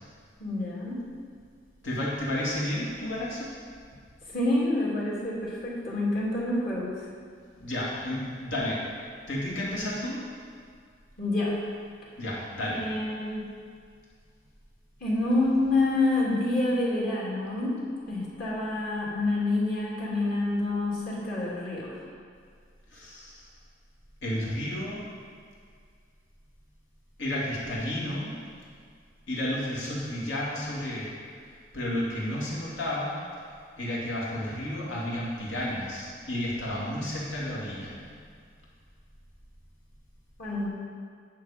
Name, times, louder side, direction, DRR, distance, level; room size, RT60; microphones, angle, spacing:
voice 1, 0.4-1.0 4.3-6.9 11.2-11.6 12.6-13.5 15.0-17.7 18.1-22.0 40.4-40.7, left 2 dB, 50° left, -6 dB, 2.7 m, -27 dB
voice 2, 1.8-3.5 7.6-8.8 9.3-10.2 12.2-12.8 22.9-23.4 24.2-25.0 27.2-28.3 29.3-31.1 31.7-33.2 33.8-38.1, left 1 dB, 75° left, -6 dB, 2.6 m, -32 dB
10.0 x 6.5 x 5.2 m, 2.1 s
head